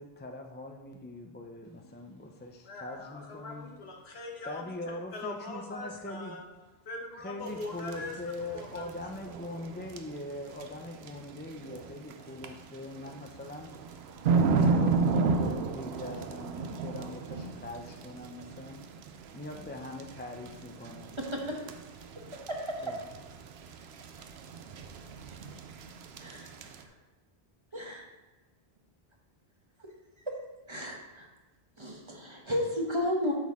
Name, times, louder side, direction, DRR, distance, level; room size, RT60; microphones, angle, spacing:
voice 1, 0.0-3.7 4.5-6.4 7.2-18.8 19.3-21.1 22.8-23.0, left 2 dB, 15° left, 3 dB, 0.5 m, -42 dB
voice 2, 2.6-4.6 5.1-6.4 6.8-8.1 8.5-8.8, left 3 dB, 85° left, 1 dB, 1.5 m, -41 dB
sound 1, 7.5-26.8, right 4 dB, 85° right, 0.9 m, -34 dB
voice 3, 27.7-28.0 30.7-31.3 31.8-33.3, left 1 dB, 30° right, 0 dB, 1.2 m, -32 dB
7.9 x 6.4 x 3.6 m, 1.2 s
omnidirectional pair, 1.0 m